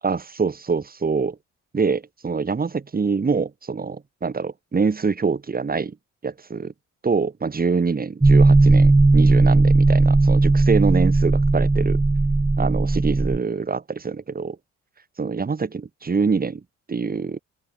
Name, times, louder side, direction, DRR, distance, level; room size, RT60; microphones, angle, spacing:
voice 1, 0.0-1.4 1.7-6.0 6.2-6.7 7.0-12.0 12.6-14.6 15.2-16.6 16.9-17.4, right 5 dB, 30° right, 2.7 m, -25 dB
sound 1, 8.2-13.4, right 3 dB, 10° right, 0.4 m, -16 dB
open air
cardioid pair, 90°, 30 cm